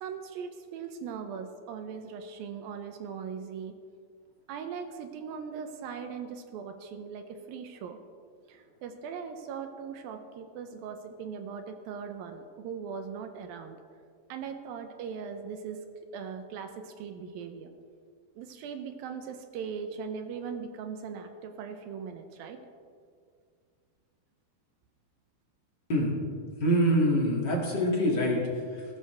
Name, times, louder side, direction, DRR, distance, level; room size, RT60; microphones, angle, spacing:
voice 1, 0.0-3.8 4.5-8.0 8.5-13.8 14.3-15.8 16.1-17.7 18.4-22.6, right 6 dB, 75° right, 7 dB, 2.3 m, -39 dB
voice 2, 26.6-28.8, equal, 30° left, -3 dB, 2.4 m, -25 dB
20.0 x 12.5 x 3.5 m, 2.1 s
omnidirectional pair, 4.8 m